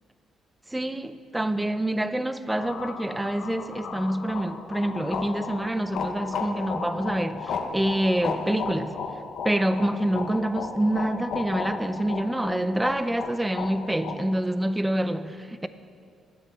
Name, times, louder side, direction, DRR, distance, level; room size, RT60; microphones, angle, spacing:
voice 1, 0.7-9.0 9.4-15.7, right 1 dB, 10° right, 0.5 m, -27 dB
sound 1, 2.6-14.2, left 5 dB, 70° left, 1.1 m, -34 dB
9.3 x 7.9 x 7.3 m
cardioid pair, 90°, 0 cm